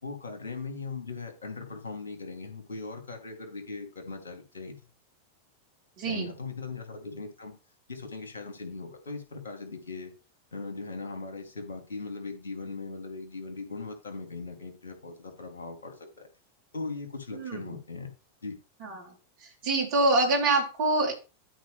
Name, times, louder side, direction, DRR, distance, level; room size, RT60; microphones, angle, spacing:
voice 1, 0.0-4.9 6.0-7.5 7.9-10.1 10.5-16.3 16.7-18.1 18.4-18.6, left 3 dB, 70° left, 3 dB, 3.1 m, -39 dB
voice 2, 6.0-6.3 17.3-17.6 18.8-19.1 19.6-21.1, right 2 dB, 45° right, -1 dB, 4.0 m, -25 dB
13.0 x 4.9 x 3.5 m, 0.31 s
figure-of-eight pair, 90°, 0 cm